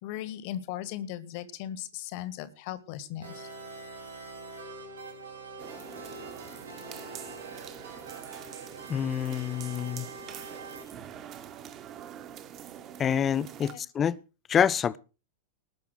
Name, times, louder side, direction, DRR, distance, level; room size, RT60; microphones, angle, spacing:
voice 1, 0.0-3.5 13.6-13.8, left 12 dB, 45° left, 1.7 m, -38 dB
sound 1, 3.2-10.8, right 3 dB, 70° right, 5.1 m, -44 dB
sound 2, 5.6-13.8, right 9 dB, 35° right, 1.6 m, -45 dB
voice 2, 8.9-10.1 13.0-14.2 14.5-15.0, left 8 dB, 25° left, 0.7 m, -27 dB
18.5 x 6.9 x 6.4 m
figure-of-eight pair, 90°, 0 cm